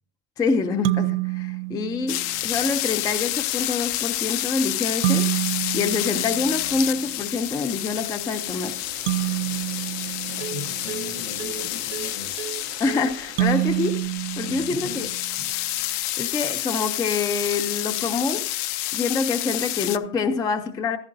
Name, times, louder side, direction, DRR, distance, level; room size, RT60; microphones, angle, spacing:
voice 1, 0.4-5.3 5.7-8.9 12.8-15.1 15.8-18.6 18.9-21.0, left 4 dB, 10° left, 0.4 m, -26 dB
sound 1, 0.8-2.5 5.0-7.1 9.1-11.2 13.4-15.4, right 21 dB, 70° right, 0.5 m, -28 dB
sound 2, 2.1-20.0, left 15 dB, 50° left, 0.6 m, -29 dB
sound 3, 8.2-13.9, right 10 dB, 30° right, 0.7 m, -39 dB
voice 2, 10.3-12.4 14.4-15.5, left 4 dB, 75° left, 7.0 m, -39 dB
14.5 x 11.5 x 2.6 m
supercardioid pair, 145°, 38 cm